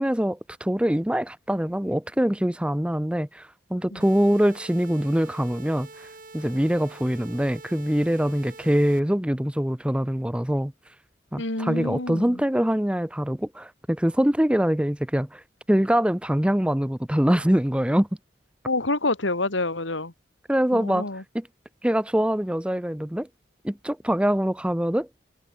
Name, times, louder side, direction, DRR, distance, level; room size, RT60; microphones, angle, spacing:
voice 1, 0.0-6.1 6.3-10.7 11.3-15.4 15.7-18.1 20.5-21.1 21.3-21.5 21.8-23.3 23.6-25.1, equal, 5° right, 0.6 m, -24 dB
sound 1, 4.0-9.0, right 3 dB, 45° right, 5.2 m, -45 dB
voice 2, 11.4-12.4 18.6-20.1 20.7-21.2, left 2 dB, 75° left, 3.0 m, -27 dB
head